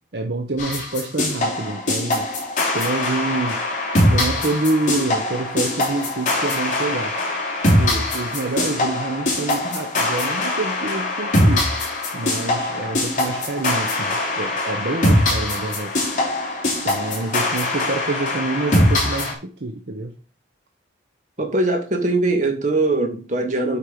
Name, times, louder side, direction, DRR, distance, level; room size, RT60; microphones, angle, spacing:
voice 1, 0.1-2.3 2.7-7.2 7.6-11.7 12.1-16.0 16.8-20.1, right 2 dB, 60° right, 4 dB, 0.8 m, -27 dB
sound 1, 0.6-19.3, left 1 dB, 40° left, 3.1 m, -22 dB
voice 2, 21.4-23.8, right 2 dB, 40° right, 4 dB, 1.7 m, -21 dB
8.4 x 4.6 x 5.0 m, 0.38 s
head